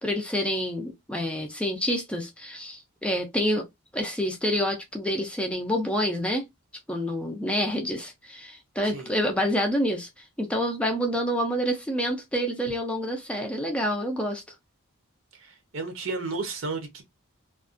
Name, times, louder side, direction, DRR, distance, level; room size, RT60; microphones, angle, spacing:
voice 1, 0.0-3.7 3.9-6.5 6.9-14.4, equal, 5° left, 0.4 m, -28 dB
voice 2, 15.3-17.0, right 3 dB, 65° right, 0.6 m, -33 dB
2.5 x 2.2 x 2.4 m
head